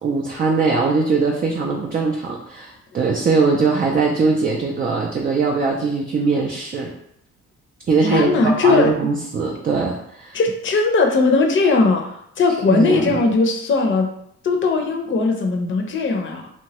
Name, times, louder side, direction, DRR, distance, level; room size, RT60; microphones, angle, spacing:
voice 1, 0.0-6.9 7.9-10.4 12.7-13.2, right 4 dB, 30° right, 0 dB, 0.4 m, -21 dB
voice 2, 8.1-8.9 10.3-14.1 14.4-16.5, left 3 dB, 40° left, 3 dB, 0.6 m, -18 dB
2.9 x 2.2 x 2.9 m, 0.74 s
cardioid pair, 90°, 30 cm